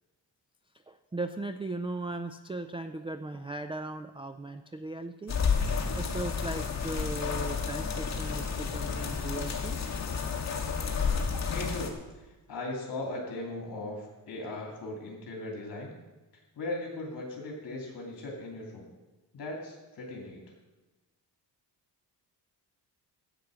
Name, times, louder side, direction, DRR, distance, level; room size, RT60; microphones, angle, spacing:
voice 1, 0.9-5.4 6.0-9.8, right 2 dB, 15° right, 9 dB, 0.3 m, -38 dB
sound 1, 5.3-11.9, left 5 dB, 40° left, 1.8 m, -31 dB
voice 2, 11.5-15.9 16.3-18.9 19.3-20.4, left 2 dB, 55° left, 0 dB, 2.5 m, -38 dB
12.5 x 8.4 x 6.3 m, 1.1 s
wide cardioid pair, 135°, 43 cm